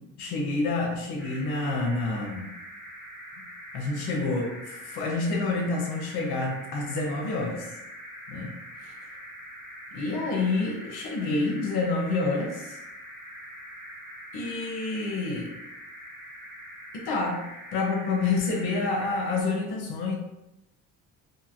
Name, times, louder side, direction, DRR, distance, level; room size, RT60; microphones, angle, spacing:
voice 1, 0.2-2.5 3.7-7.7 8.3-8.5 9.9-12.8 14.3-15.5 16.9-17.4 17.7-20.2, left 3 dB, 85° left, 1 dB, 0.8 m, -28 dB
sound 1, 1.2-19.4, equal, 5° left, 0.3 m, -44 dB
3.3 x 2.5 x 2.5 m, 0.91 s
cardioid pair, 175°, 38 cm